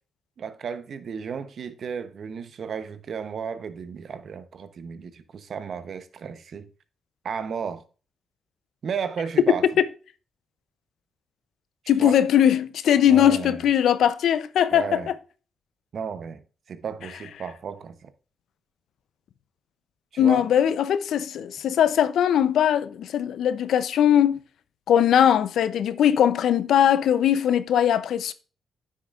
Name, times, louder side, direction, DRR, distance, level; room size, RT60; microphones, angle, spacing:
voice 1, 0.4-6.7 7.2-7.8 8.8-9.8 12.0-12.2 13.1-13.6 14.7-15.1 15.9-16.4 16.7-18.1 20.1-20.5, right 6 dB, 60° right, 0.8 m, -33 dB
voice 2, 11.9-15.0 20.2-24.4 24.9-28.3, left 10 dB, 80° left, 0.5 m, -20 dB
9.4 x 6.4 x 2.4 m
cardioid pair, 70°, 0 cm